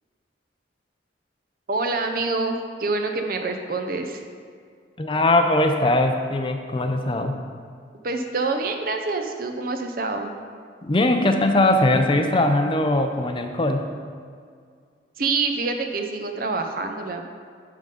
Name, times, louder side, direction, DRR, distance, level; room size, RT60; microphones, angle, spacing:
voice 1, 1.7-4.2 8.0-10.3 15.2-17.2, right 3 dB, 50° right, 5 dB, 0.7 m, -26 dB
voice 2, 5.0-7.4 10.8-13.9, left 1 dB, 30° left, 5 dB, 0.5 m, -20 dB
11.0 x 3.8 x 5.2 m, 2.1 s
head